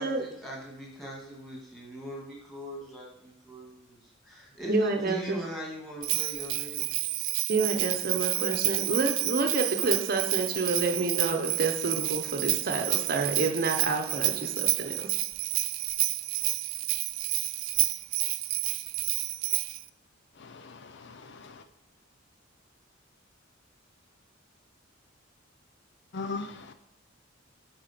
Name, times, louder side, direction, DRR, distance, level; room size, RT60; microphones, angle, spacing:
voice 1, 0.0-7.0, right 1 dB, ahead, -2 dB, 2.2 m, -40 dB
voice 2, 4.7-5.4 7.5-15.1, right 3 dB, 45° right, 5 dB, 0.8 m, -29 dB
Bell, 6.0-19.8, right 19 dB, 85° right, 0.3 m, -30 dB
voice 3, 20.3-21.7 26.1-26.7, left 3 dB, 60° left, 9 dB, 0.6 m, -39 dB
10.0 x 4.4 x 6.0 m, 0.82 s
head